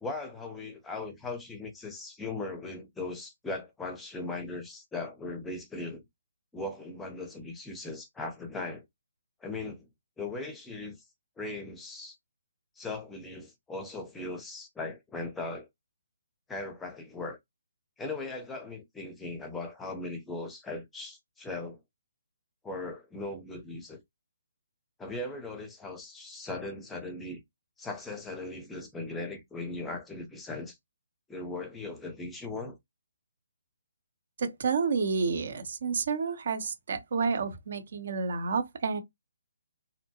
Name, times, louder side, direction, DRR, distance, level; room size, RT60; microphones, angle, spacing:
voice 1, 0.0-6.0 6.5-8.8 9.4-9.9 10.2-11.0 11.4-12.2 12.8-15.7 16.5-17.4 18.0-21.8 22.6-24.0 25.0-27.4 27.8-30.8 31.3-32.8, left 2 dB, 10° left, 0.6 m, -38 dB
voice 2, 34.4-39.0, right 5 dB, 55° right, 0.7 m, -30 dB
2.6 x 2.2 x 2.7 m
figure-of-eight pair, 140°, 0 cm